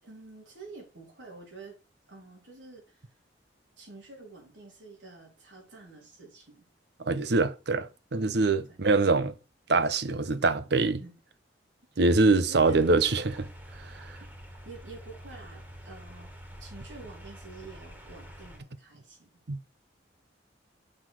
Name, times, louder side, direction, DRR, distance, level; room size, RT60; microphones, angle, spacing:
voice 1, 0.0-1.8 2.1-3.0 3.8-6.7 8.7-8.8 11.0-11.1 11.9-12.0 12.4-13.3 14.2-14.3 14.6-16.3 16.6-19.4, right 3 dB, 85° right, 4.0 m, -48 dB
voice 2, 7.1-9.3 9.7-11.0 12.0-13.4 13.8-14.2 19.5-19.6, right 3 dB, 65° right, 0.8 m, -24 dB
sound 1, 12.6-18.6, equal, 10° right, 1.8 m, -47 dB
6.5 x 6.0 x 4.7 m
head